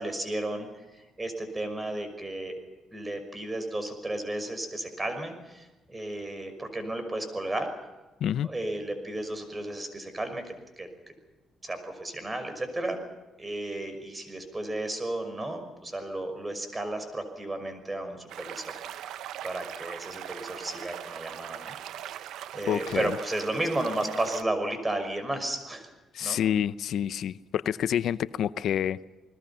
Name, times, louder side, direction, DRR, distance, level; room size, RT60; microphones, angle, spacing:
voice 1, 0.0-2.6 2.9-7.7 8.4-10.4 10.8-10.9 11.6-13.0 13.4-18.8 19.4-21.8 22.1-22.2 22.5-25.9 26.2-26.4, right 1 dB, 20° right, 8 dB, 5.8 m, -33 dB
sound 1, 18.3-24.4, right 11 dB, 85° right, 0.9 m, -40 dB
voice 2, 22.7-23.1 26.1-29.1, left 9 dB, 70° left, 15 dB, 0.6 m, -28 dB
30.0 x 20.5 x 5.8 m, 1.1 s
cardioid pair, 90°, 0 cm